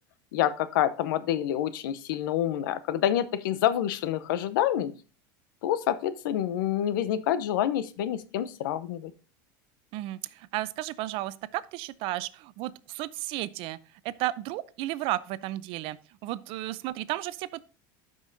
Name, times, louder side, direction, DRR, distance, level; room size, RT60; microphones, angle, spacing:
voice 1, 0.3-4.9 5.6-9.1, left 11 dB, 80° left, 0.7 m, -27 dB
voice 2, 9.9-13.8 14.0-17.7, right 16 dB, 55° right, 0.5 m, -33 dB
12.5 x 5.4 x 2.6 m
supercardioid pair, 115°, 11 cm